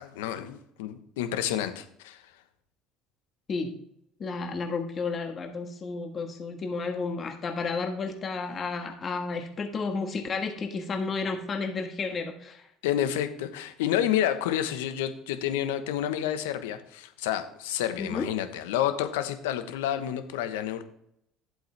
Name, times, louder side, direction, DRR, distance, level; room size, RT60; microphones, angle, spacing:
voice 1, 0.0-2.2 12.8-20.8, left 11 dB, 85° left, 9 dB, 1.1 m, -29 dB
voice 2, 4.2-12.7 18.0-18.3, left 4 dB, 40° left, 5 dB, 1.5 m, -32 dB
11.0 x 7.8 x 3.3 m, 0.73 s
hypercardioid pair, 75°, 0 cm